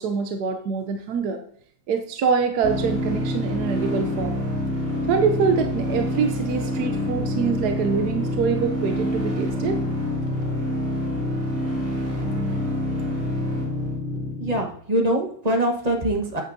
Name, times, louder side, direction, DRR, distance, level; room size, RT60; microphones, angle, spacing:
voice 1, 0.0-1.4 1.9-4.4 5.1-9.8 12.3-12.4, right 6 dB, 70° right, 5 dB, 1.2 m, -25 dB
sound 1, 2.6-14.6, left 1 dB, 45° right, 2.8 m, -26 dB
voice 2, 14.3-16.4, right 1 dB, 25° right, 2 dB, 1.2 m, -23 dB
9.0 x 8.8 x 2.7 m, 0.62 s
omnidirectional pair, 1.9 m